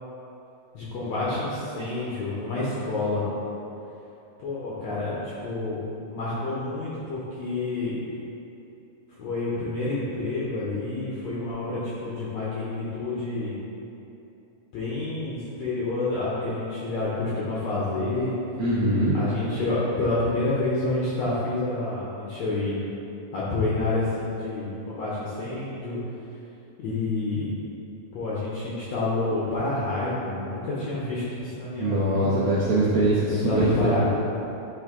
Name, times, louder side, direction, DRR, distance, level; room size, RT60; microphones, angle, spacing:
voice 1, 0.7-3.2 4.4-5.8 6.1-8.0 9.2-13.6 14.7-18.3 19.1-22.8 23.3-26.0 26.8-27.5 28.1-32.4 33.4-34.1, left 2 dB, 75° left, -8 dB, 1.5 m, -28 dB
voice 2, 18.6-19.1 31.8-34.1, right 1 dB, 80° right, -8 dB, 1.6 m, -23 dB
10.0 x 3.5 x 3.6 m, 2.9 s
omnidirectional pair, 4.1 m